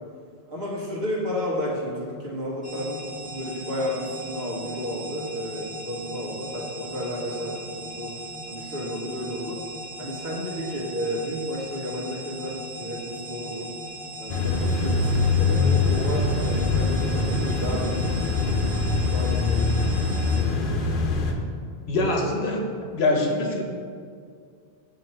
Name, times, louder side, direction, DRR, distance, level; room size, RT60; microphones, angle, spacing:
voice 1, 0.5-8.2 8.5-9.6 10.0-13.7 14.2-18.6 18.9-19.8 20.1-20.8, equal, 85° right, -6 dB, 1.4 m, -32 dB
sound 1, 2.6-20.4, right 1 dB, 10° left, 0.7 m, -39 dB
sound 2, 14.3-21.3, left 3 dB, 60° left, 0.8 m, -23 dB
voice 2, 21.9-23.6, left 2 dB, 85° left, 1 dB, 1.1 m, -24 dB
7.7 x 2.9 x 4.3 m, 2.2 s
omnidirectional pair, 1.0 m